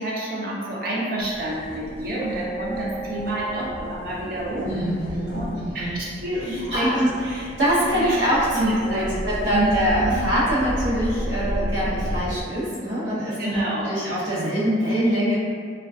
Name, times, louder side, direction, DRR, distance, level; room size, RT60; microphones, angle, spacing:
voice 1, 0.0-4.7 5.3-5.5 5.7-7.0 7.2-7.4 7.9-8.2 8.5-9.2 9.5-9.7 10.0-10.2 13.4-14.0, right 1 dB, 55° right, -5 dB, 0.5 m, -29 dB
sound 1, 1.2-12.4, equal, 50° left, 0.5 m, -32 dB
voice 2, 4.6-6.0 6.4-15.4, equal, 85° right, -10 dB, 0.8 m, -24 dB
2.4 x 2.2 x 2.3 m, 2.1 s
head